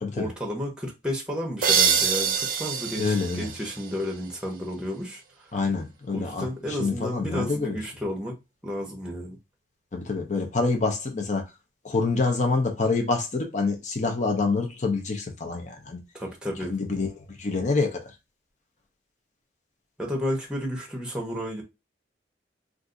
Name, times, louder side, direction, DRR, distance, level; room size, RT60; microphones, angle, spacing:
voice 1, 0.1-5.5 6.1-8.4 8.6-9.4 16.1-16.7 20.0-21.6, equal, 5° right, 0.8 m, -32 dB
sound 1, 1.6-4.3, right 7 dB, 50° right, 0.5 m, -25 dB
voice 2, 3.0-3.5 5.5-7.8 9.9-11.5 11.8-16.0 16.7-17.1 17.4-18.0, left 3 dB, 40° left, 0.6 m, -26 dB
2.5 x 2.5 x 3.7 m
head